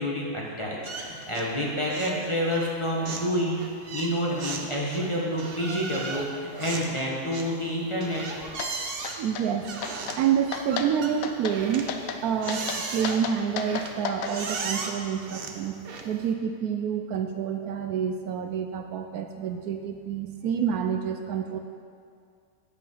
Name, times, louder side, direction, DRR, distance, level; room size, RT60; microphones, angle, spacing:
voice 1, 0.0-3.6 3.9-8.3, equal, 20° left, -4 dB, 1.2 m, -28 dB
sound 1, 0.9-1.6 1.9-2.2 2.5-16.3, right 4 dB, 45° right, 0.8 m, -37 dB
sound 2, 8.6-8.7 9.0-9.5 9.8-10.2 10.5-10.9 11.2-11.6 11.9-12.2 12.5-14.3, left 7 dB, 65° left, 1.0 m, -33 dB
voice 2, 9.2-9.7 10.2-15.8 16.0-21.6, right 8 dB, 75° right, 6 dB, 1.0 m, -28 dB
8.3 x 7.9 x 5.7 m, 2.3 s
omnidirectional pair, 1.7 m